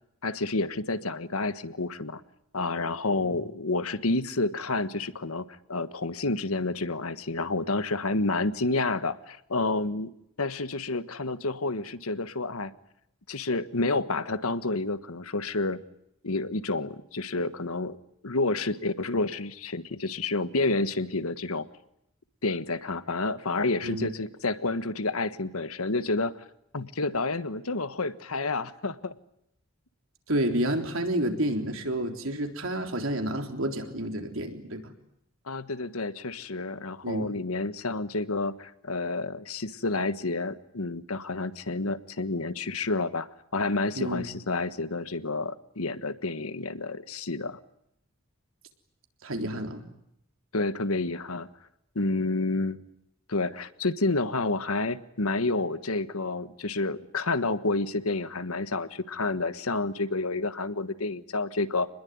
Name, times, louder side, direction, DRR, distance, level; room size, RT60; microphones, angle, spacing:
voice 1, 0.2-2.2 2.5-10.1 10.4-12.7 13.3-15.8 16.2-18.0 18.2-21.7 22.4-26.4 26.7-29.1 35.5-43.3 43.5-47.6 50.5-51.5 51.9-52.8 53.3-61.9, left 3 dB, 85° left, 12 dB, 1.4 m, -29 dB
voice 2, 30.3-34.8 37.0-37.3 43.9-44.3 49.2-49.8, right 1 dB, 70° right, 4 dB, 3.7 m, -30 dB
27.5 x 21.0 x 9.5 m, 0.77 s
head